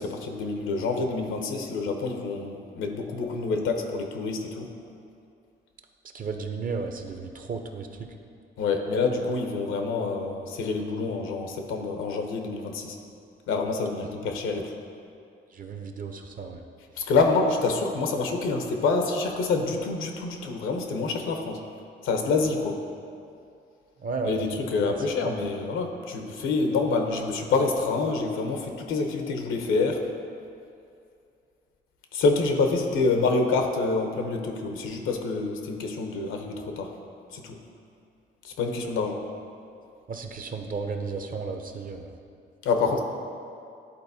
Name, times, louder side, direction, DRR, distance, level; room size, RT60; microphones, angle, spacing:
voice 1, 0.0-4.7 8.6-13.0 13.5-14.7 17.0-21.6 22.0-22.8 24.2-30.0 32.1-36.9 37.3-37.6 38.4-39.2 42.6-43.0, left 3 dB, 85° left, 4 dB, 0.8 m, -27 dB
voice 2, 6.1-8.1 15.5-16.6 17.0-17.1 24.0-24.5 24.8-24.9 25.2-25.4 40.1-42.1, right 4 dB, 45° right, 5 dB, 0.7 m, -33 dB
11.0 x 4.1 x 2.7 m, 2.5 s
cardioid pair, 90°, 20 cm